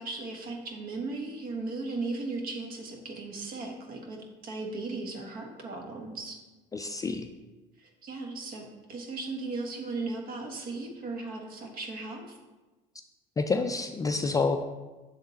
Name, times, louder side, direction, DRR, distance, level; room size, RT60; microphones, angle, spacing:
voice 1, 0.0-4.2 4.4-6.4 7.8-12.4, right 3 dB, 55° right, 2 dB, 1.2 m, -37 dB
voice 2, 6.7-7.3 13.4-14.6, left 4 dB, 20° left, 6 dB, 0.3 m, -28 dB
7.0 x 3.6 x 4.0 m, 1.2 s
supercardioid pair, 100°, 18 cm